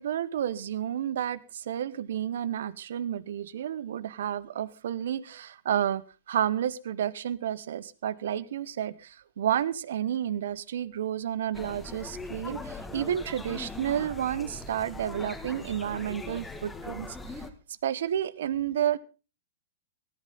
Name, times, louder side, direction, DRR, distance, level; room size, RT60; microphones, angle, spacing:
voice 1, 0.0-17.4 17.8-19.0, right 10 dB, 70° right, 20 dB, 0.9 m, -31 dB
sound 1, 11.5-17.5, left 2 dB, 10° left, 2.1 m, -40 dB
18.0 x 14.0 x 3.9 m, 0.33 s
hypercardioid pair, 110°, 0 cm